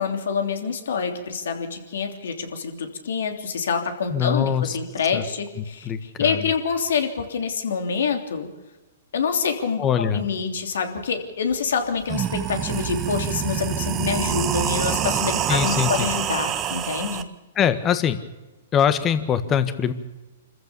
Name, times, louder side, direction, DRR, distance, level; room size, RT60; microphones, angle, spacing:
voice 1, 0.0-8.5 9.1-17.2, left 6 dB, 75° left, 5 dB, 3.2 m, -26 dB
voice 2, 4.1-4.8 5.1-5.2 5.6-6.5 9.8-10.3 15.5-16.1 17.5-18.2 18.7-19.9, left 8 dB, 25° left, 11 dB, 1.5 m, -23 dB
sound 1, 11.5-11.6 12.0-17.2, right 10 dB, 25° right, 1.3 m, -26 dB
26.5 x 14.5 x 7.0 m, 1.1 s
hypercardioid pair, 130°, 0 cm